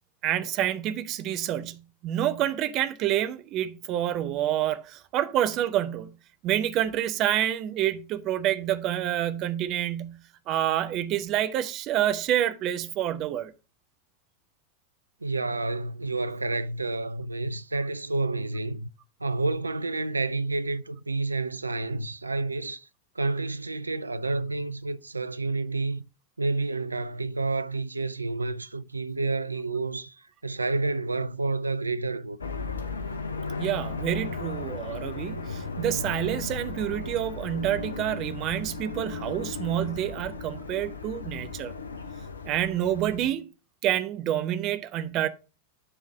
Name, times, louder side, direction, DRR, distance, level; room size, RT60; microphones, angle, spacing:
voice 1, 0.2-6.2 6.4-10.2 10.5-13.5 33.6-41.7 42.4-43.5 43.8-45.3, right 11 dB, 35° right, 0.8 m, -28 dB
voice 2, 15.2-18.9 19.2-22.9 23.2-26.0 26.4-30.2 30.4-32.4, right 3 dB, 80° right, 0.4 m, -29 dB
sound 1, 32.4-43.3, left 4 dB, 75° left, 0.8 m, -36 dB
9.9 x 3.8 x 4.5 m
figure-of-eight pair, 90°, 0 cm